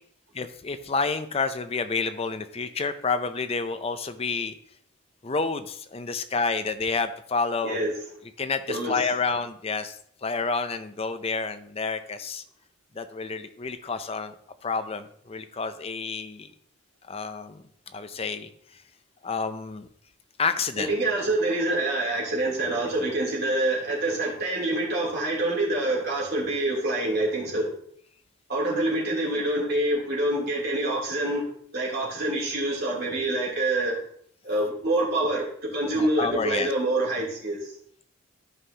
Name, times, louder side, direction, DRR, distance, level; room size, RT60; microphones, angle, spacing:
voice 1, 0.3-4.5 5.2-7.8 8.4-10.0 10.2-12.4 13.0-14.3 14.6-16.5 17.1-17.6 17.9-18.5 19.2-19.9 20.4-20.9 36.0-36.7, left 4 dB, 30° left, 10 dB, 0.5 m, -29 dB
voice 2, 8.7-9.1 20.8-27.7 28.5-31.4 31.7-34.0 34.4-37.7, right 1 dB, 50° right, -4 dB, 3.2 m, -26 dB
13.0 x 5.5 x 2.8 m, 0.64 s
head